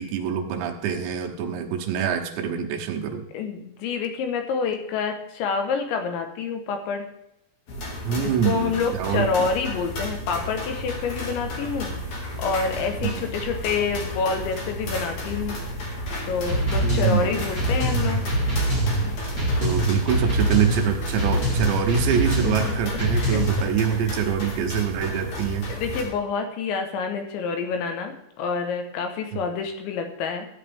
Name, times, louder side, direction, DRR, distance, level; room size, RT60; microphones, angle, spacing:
voice 1, 0.0-3.3 8.0-9.5 16.8-17.4 19.6-25.7 29.3-29.4, right 8 dB, 75° right, 3 dB, 3.0 m, -25 dB
voice 2, 3.3-7.1 8.2-11.9 12.4-15.6 16.3-18.3 22.4-22.8 23.1-23.4 24.1-24.2 25.7-30.5, left 5 dB, 80° left, 5 dB, 3.4 m, -28 dB
sound 1, 7.7-26.0, left 1 dB, 50° left, 2.8 m, -33 dB
sound 2, 16.5-23.7, right 1 dB, 30° left, 2.3 m, -24 dB
14.0 x 9.2 x 3.5 m, 0.81 s
omnidirectional pair, 5.3 m